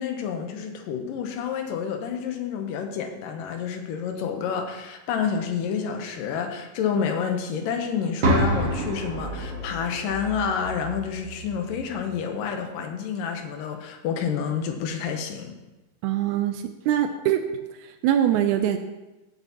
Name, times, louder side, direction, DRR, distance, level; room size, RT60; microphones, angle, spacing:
voice 1, 0.0-15.5, left 7 dB, 80° left, 5 dB, 2.6 m, -29 dB
sound 1, 8.2-12.2, right 1 dB, 60° right, 1.1 m, -28 dB
voice 2, 16.0-17.4 17.8-18.8, right 11 dB, 90° right, 8 dB, 1.7 m, -23 dB
15.5 x 8.0 x 2.9 m, 1.0 s
omnidirectional pair, 4.0 m